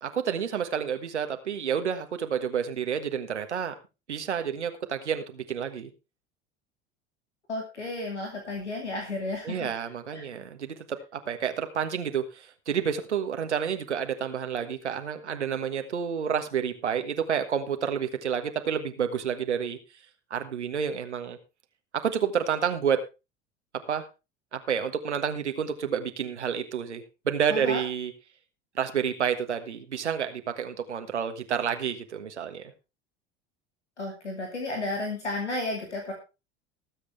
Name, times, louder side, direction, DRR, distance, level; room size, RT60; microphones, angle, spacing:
voice 1, 0.0-3.7 4.1-5.9 9.4-19.8 20.3-21.4 21.9-23.0 23.9-24.0 24.5-28.1 28.7-32.7, right 7 dB, 85° right, 7 dB, 1.5 m, -29 dB
voice 2, 7.5-9.7 10.1-10.2 27.5-27.8 34.0-36.1, left 2 dB, 90° left, 2 dB, 2.5 m, -33 dB
19.5 x 8.1 x 3.3 m, 0.29 s
figure-of-eight pair, 75°, 34 cm